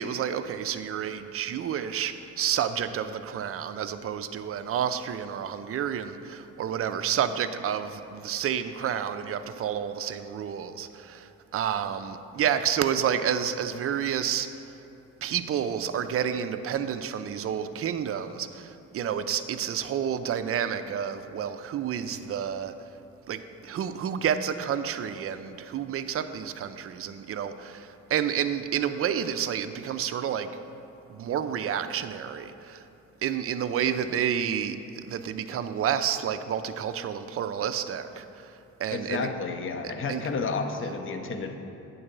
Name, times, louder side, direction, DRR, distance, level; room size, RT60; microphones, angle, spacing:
voice 1, 0.0-14.5 15.2-22.7 23.3-30.5 31.1-32.8 33.2-38.5 38.8-39.3 40.1-40.2, right 8 dB, 50° right, 9 dB, 0.5 m, -30 dB
voice 2, 38.9-41.5, left 4 dB, 40° left, 5 dB, 0.8 m, -31 dB
8.7 x 3.9 x 6.7 m, 2.9 s
cardioid pair, 90°, 30 cm